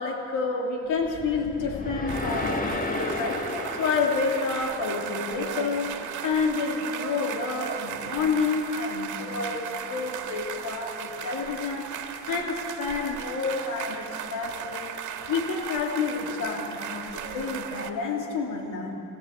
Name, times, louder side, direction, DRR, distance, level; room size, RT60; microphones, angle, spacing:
voice 1, 0.0-3.4 3.8-12.0 12.3-14.9 15.3-19.0, left 4 dB, 80° left, 1 dB, 2.8 m, -29 dB
sound 1, 1.0-5.3, left 2 dB, 25° left, 1.8 m, -33 dB
sound 2, 2.1-17.9, right 8 dB, 70° right, 1.9 m, -36 dB
25.0 x 17.5 x 8.2 m, 2.9 s
cardioid pair, 85°, 31 cm